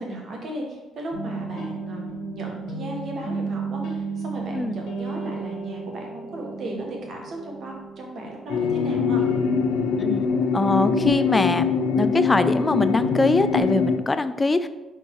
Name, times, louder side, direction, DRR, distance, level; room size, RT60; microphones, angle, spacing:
voice 1, 0.0-9.2, right 1 dB, 60° right, 0 dB, 1.7 m, -36 dB
sound 1, 1.1-13.6, right 3 dB, 70° left, 1.4 m, -35 dB
sound 2, 8.5-14.0, left 5 dB, 85° left, 0.6 m, -23 dB
voice 2, 10.5-14.7, left 2 dB, 20° left, 12 dB, 0.4 m, -22 dB
5.4 x 4.5 x 4.7 m, 1.1 s
cardioid pair, 90°, 0 cm